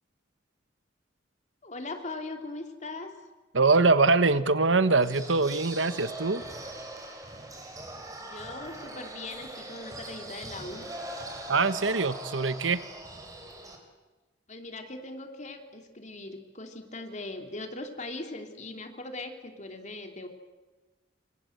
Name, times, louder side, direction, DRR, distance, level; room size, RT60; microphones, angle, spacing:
voice 1, 1.6-3.1 8.2-10.9 14.5-20.3, left 2 dB, 40° left, 5 dB, 3.0 m, -40 dB
voice 2, 3.5-6.4 11.5-12.8, right 3 dB, 85° right, 13 dB, 1.3 m, -23 dB
sound 1, 5.0-13.8, right 2 dB, 20° right, 4.7 m, -41 dB
28.0 x 26.0 x 8.0 m, 1.2 s
head